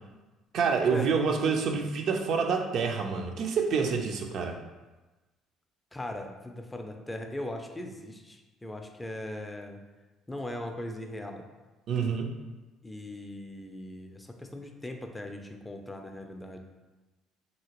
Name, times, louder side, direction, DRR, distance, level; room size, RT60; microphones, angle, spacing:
voice 1, 0.5-4.6 11.9-12.3, right 5 dB, 65° right, 3 dB, 0.3 m, -27 dB
voice 2, 5.9-9.8 10.3-11.5 12.8-16.6, left 1 dB, 10° left, 4 dB, 0.3 m, -39 dB
2.8 x 2.8 x 2.9 m, 1.2 s
cardioid pair, 100°, 0 cm